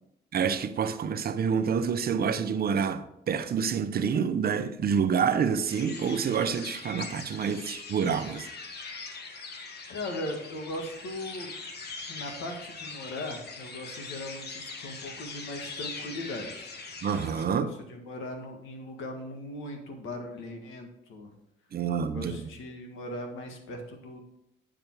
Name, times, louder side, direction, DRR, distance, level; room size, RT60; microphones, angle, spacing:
voice 1, 0.3-8.5 17.0-17.7 21.7-22.5, right 6 dB, 50° right, 0.7 m, -28 dB
sound 1, 5.7-17.4, left 4 dB, 55° left, 1.3 m, -42 dB
voice 2, 9.9-11.5 12.1-16.7 17.4-21.3 22.1-24.2, left 1 dB, 85° left, 1.5 m, -39 dB
8.9 x 5.2 x 4.5 m
cardioid pair, 90°, 20 cm